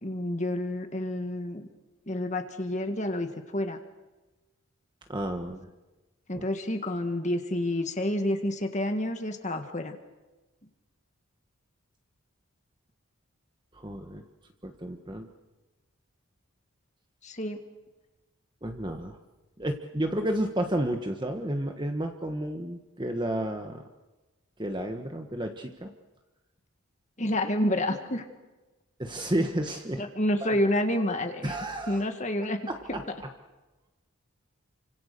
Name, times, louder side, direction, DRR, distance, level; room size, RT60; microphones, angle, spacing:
voice 1, 0.0-1.7 2.1-3.8 6.3-10.0 17.2-17.6 27.2-28.3 30.0-31.5 31.9-33.1, left 1 dB, 35° left, 6 dB, 1.8 m, -29 dB
voice 2, 5.1-5.7 6.3-6.4 13.7-14.2 14.6-15.3 18.6-19.2 19.6-23.8 24.6-25.9 29.0-30.0 31.4-32.0 32.9-33.3, right 1 dB, 20° right, 4 dB, 1.4 m, -31 dB
29.0 x 25.5 x 6.8 m, 1.1 s
head